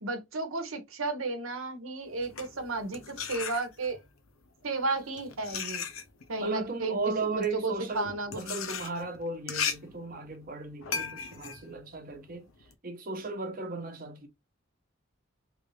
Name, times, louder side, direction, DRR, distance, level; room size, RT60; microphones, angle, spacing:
voice 1, 0.0-4.0 4.6-5.8 6.3-7.0 7.3-8.7, right 3 dB, 80° right, 1.0 m, -33 dB
sound 1, 2.1-4.1 4.8-12.7, left 6 dB, 80° left, 0.7 m, -37 dB
voice 2, 6.4-12.5 12.8-14.3, right 3 dB, 45° right, 0.9 m, -36 dB
3.3 x 2.5 x 3.2 m
head